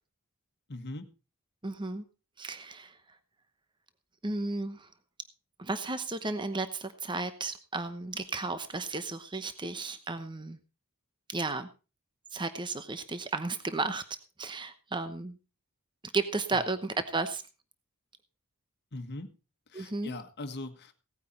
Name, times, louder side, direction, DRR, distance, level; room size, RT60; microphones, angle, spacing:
voice 1, 0.7-1.1 16.5-16.6 18.9-19.3 19.7-20.9, left 2 dB, 50° left, 7 dB, 1.5 m, -40 dB
voice 2, 1.6-2.0 2.4-3.0 4.2-4.9 5.6-10.6 11.3-11.7 12.3-14.0 14.4-15.4 16.1-17.4 19.7-20.1, right 3 dB, 20° right, 10 dB, 0.9 m, -33 dB
17.5 x 9.3 x 4.3 m, 0.32 s
head